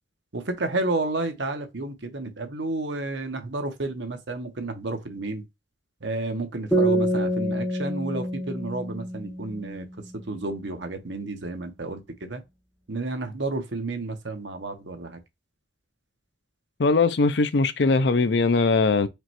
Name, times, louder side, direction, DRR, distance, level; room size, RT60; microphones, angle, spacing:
voice 1, 0.3-5.4 6.0-9.9 10.1-12.4 12.9-15.2, right 2 dB, 75° right, 1.1 m, -31 dB
sound 1, 6.7-10.2, right 1 dB, 5° left, 1.3 m, -26 dB
voice 2, 16.8-19.1, left 3 dB, 65° left, 0.6 m, -20 dB
5.0 x 3.1 x 3.0 m
head